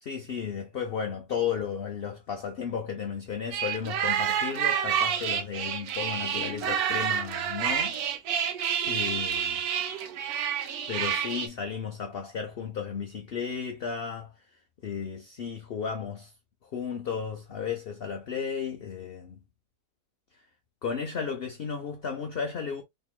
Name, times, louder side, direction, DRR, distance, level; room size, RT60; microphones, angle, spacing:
voice 1, 0.0-8.0 8.8-9.6 10.9-14.3 14.8-16.3 16.6-19.4 20.8-22.8, left 6 dB, 65° left, 0.5 m, -34 dB
sound 1, 3.5-11.5, right 8 dB, 75° right, 1.1 m, -29 dB
3.6 x 2.8 x 2.3 m
omnidirectional pair, 1.7 m